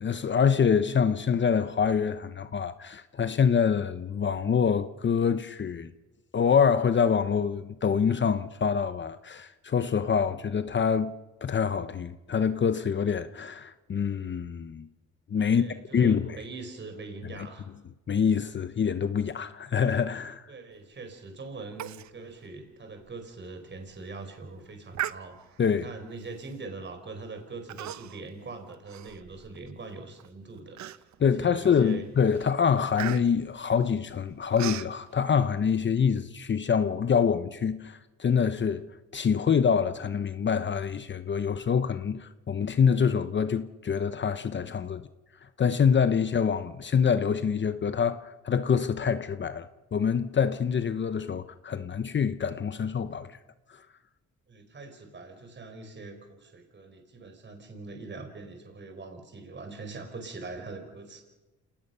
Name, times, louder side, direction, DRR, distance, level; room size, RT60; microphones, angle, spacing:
voice 1, 0.0-5.9 6.3-11.1 11.4-14.9 15.3-15.6 15.9-16.4 17.4-17.5 18.1-20.4 25.6-25.9 31.2-38.9 39.1-45.0 45.6-53.4, left 7 dB, 40° left, 0.9 m, -25 dB
voice 2, 15.4-17.7 20.5-32.0 54.5-61.2, right 3 dB, 35° right, 4.3 m, -43 dB
Human voice, 21.8-22.1 22.4-22.5 23.0-23.2 23.7-24.0 24.9-25.7 26.4-26.7 27.7-28.3 28.7-29.7 30.2-30.3 30.8-31.3 31.8-32.0 32.3-34.9, right 12 dB, 70° right, 0.9 m, -37 dB
28.0 x 19.0 x 5.7 m
cardioid pair, 90°, 30 cm